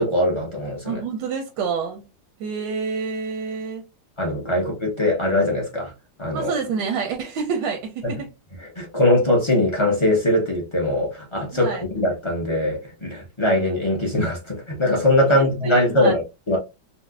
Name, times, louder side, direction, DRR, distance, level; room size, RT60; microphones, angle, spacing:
voice 1, 0.0-1.0 4.2-5.9 6.2-6.5 8.0-8.1 8.6-16.6, left 1 dB, 45° left, 0.3 m, -21 dB
voice 2, 0.8-2.0 2.4-3.8 4.5-4.6 6.3-8.3 11.5-11.8 15.3-16.1, right 5 dB, 85° right, 1.3 m, -28 dB
4.1 x 2.0 x 2.3 m
omnidirectional pair, 1.9 m